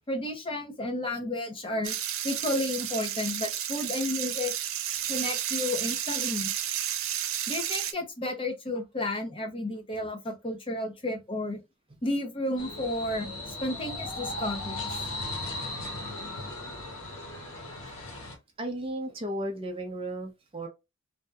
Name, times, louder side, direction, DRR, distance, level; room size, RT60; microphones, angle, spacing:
voice 1, 0.1-2.0 2.2-4.5 5.1-6.5 7.5-11.6 12.0-14.9, left 1 dB, 25° left, 0.6 m, -32 dB
sound 1, 1.8-7.9, right 11 dB, 75° right, 0.4 m, -32 dB
sound 2, 12.6-18.3, left 2 dB, 85° left, 1.3 m, -37 dB
voice 2, 18.6-20.7, right 1 dB, 25° right, 0.5 m, -34 dB
2.7 x 2.1 x 3.4 m
head